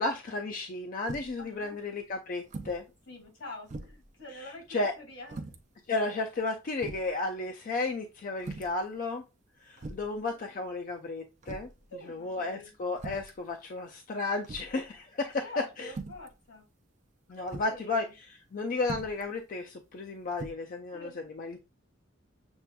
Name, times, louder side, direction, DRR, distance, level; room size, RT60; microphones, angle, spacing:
voice 1, 0.0-2.8 4.7-4.9 5.9-9.2 9.6-11.7 12.1-15.9 17.3-21.6, left 3 dB, 45° left, 0.4 m, -33 dB
sound 1, 1.1-1.4 2.5-2.8 3.2-3.3 3.7-4.1 5.3-5.6 6.3-6.4 6.8-7.1 8.4-8.8 9.8-10.2 11.4-11.8 12.9-13.4 14.4-14.8 15.9-16.3 17.5-17.8 18.8-19.2 20.3-20.5, right 3 dB, 35° right, 0.5 m, -41 dB
voice 2, 1.4-1.8 3.1-5.5 9.8-9.9 10.1-10.5 11.9-12.7 15.4-16.7 17.3-18.1 20.9-21.2, left 2 dB, 85° left, 2.1 m, -46 dB
7.0 x 2.5 x 2.2 m
head